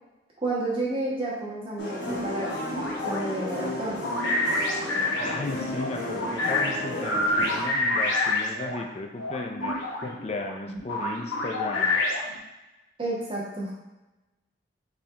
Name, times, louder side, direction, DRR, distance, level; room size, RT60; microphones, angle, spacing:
voice 1, 0.4-2.5 3.0-4.0 13.0-13.7, right 2 dB, 30° right, -5 dB, 1.3 m, -30 dB
sound 1, 1.8-7.7, left 1 dB, 60° left, 1.0 m, -34 dB
sound 2, 2.0-8.8 9.2-12.4, left 2 dB, 90° left, 1.0 m, -28 dB
voice 2, 5.2-12.0, left 2 dB, 35° left, 4 dB, 0.4 m, -35 dB
4.3 x 3.4 x 3.6 m, 1.0 s
head